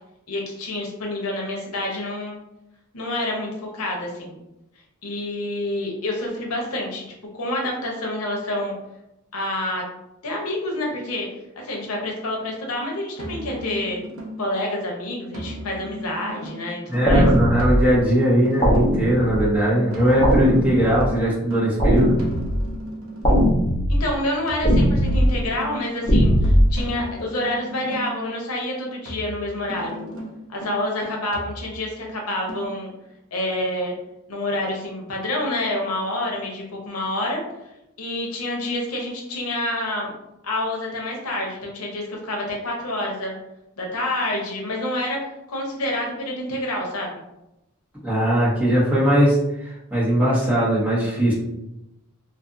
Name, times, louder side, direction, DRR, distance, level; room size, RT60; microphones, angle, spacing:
voice 1, 0.3-2.4 2.9-4.4 5.0-7.0 7.3-8.7 9.3-9.8 10.2-11.3 11.6-14.0 14.4-17.3 23.9-30.0 30.5-32.9 33.3-33.9 34.3-37.4 38.0-40.1 40.4-43.3 43.8-47.2, left 1 dB, 85° left, 0 dB, 0.7 m, -28 dB
sound 1, 13.2-14.6 15.3-19.1 19.9-23.6 24.5-28.3 29.1-32.0 32.5-32.7, equal, 75° right, 0.6 m, -36 dB
voice 2, 16.9-22.2 48.0-51.3, right 1 dB, 5° right, -10 dB, 1.1 m, -19 dB
sound 2, 17.1-17.8 18.6-19.4 20.2-21.1 21.8-22.6 23.2-24.0 24.6-25.3 26.1-26.7, equal, 20° left, 0.7 m, -18 dB
2.5 x 2.5 x 2.5 m, 0.89 s
head